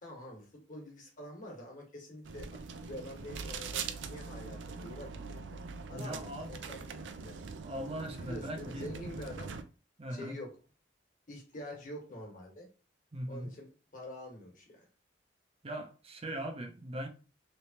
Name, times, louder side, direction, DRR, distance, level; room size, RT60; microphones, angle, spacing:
voice 1, 0.0-5.6 5.9-7.4 8.2-9.5 10.1-10.5 11.3-12.7 13.3-14.9, left 1 dB, 45° left, 1.3 m, -46 dB
sound 1, 2.2-9.6, right 5 dB, 80° right, 0.4 m, -42 dB
voice 2, 5.9-6.5 7.6-8.9 10.0-10.3 13.1-13.5 15.6-17.1, right 1 dB, 35° right, 0.5 m, -40 dB
3.2 x 3.0 x 2.8 m
head